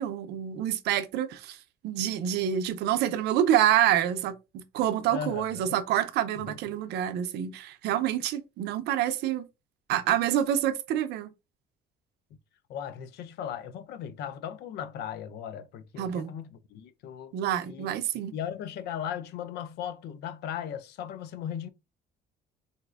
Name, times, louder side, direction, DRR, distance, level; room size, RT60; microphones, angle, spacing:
voice 1, 0.0-1.6 1.8-9.5 9.9-11.3 16.0-16.3 17.3-18.3, right 11 dB, 80° right, 0.5 m, -27 dB
voice 2, 5.1-5.8 6.3-6.8 12.7-17.3 17.7-18.0 18.3-21.7, left 9 dB, 75° left, 0.5 m, -37 dB
4.0 x 2.6 x 2.3 m
cardioid pair, 110°, 17 cm